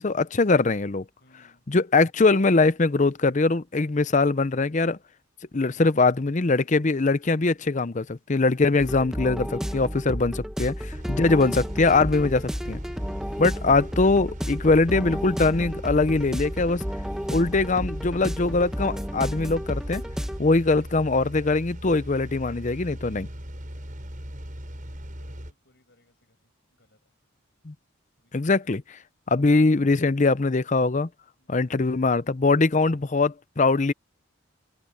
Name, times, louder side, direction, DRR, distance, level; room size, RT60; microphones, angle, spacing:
voice 1, 0.0-1.0 1.7-5.0 5.5-12.8 13.4-16.8 17.3-20.0 20.4-23.3 27.6-27.7 28.3-29.0 29.3-31.1 31.5-33.9, left 3 dB, 35° left, 0.6 m, -22 dB
voice 2, 1.2-1.6 23.2-24.0 24.8-27.0 28.2-28.3 31.4-31.6, left 1 dB, 55° left, 7.2 m, -64 dB
sound 1, 8.8-20.4, equal, 5° right, 1.3 m, -32 dB
sound 2, 10.9-25.5, equal, 40° right, 6.1 m, -40 dB
open air
head